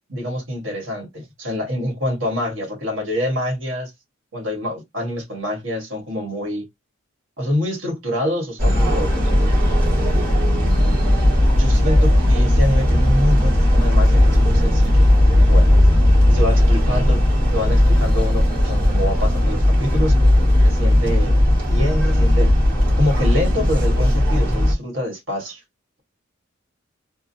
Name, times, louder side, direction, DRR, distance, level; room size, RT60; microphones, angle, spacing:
voice 1, 0.1-3.9 4.3-6.7 7.4-9.2 11.5-15.1 15.3-15.8 16.3-20.2 20.6-21.4 21.7-22.5 23.0-25.6, left 1 dB, 65° right, 1.6 m, -26 dB
sound 1, 8.6-24.7, left 1 dB, 45° right, 1.6 m, -16 dB
3.6 x 2.0 x 2.7 m
head